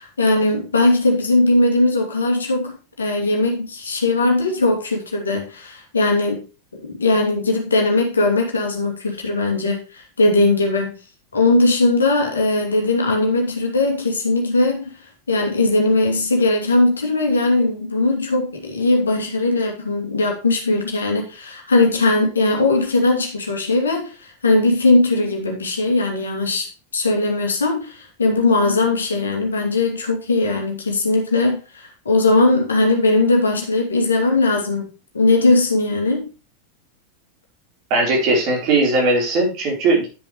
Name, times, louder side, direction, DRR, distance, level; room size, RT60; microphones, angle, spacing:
voice 1, 0.0-6.4 6.7-10.9 11.3-15.0 15.3-36.3, left 2 dB, 70° left, 2 dB, 2.6 m, -19 dB
voice 2, 37.9-40.1, right 2 dB, 40° right, 0 dB, 4.2 m, -18 dB
10.5 x 7.2 x 3.2 m, 0.32 s
figure-of-eight pair, 90°, 0 cm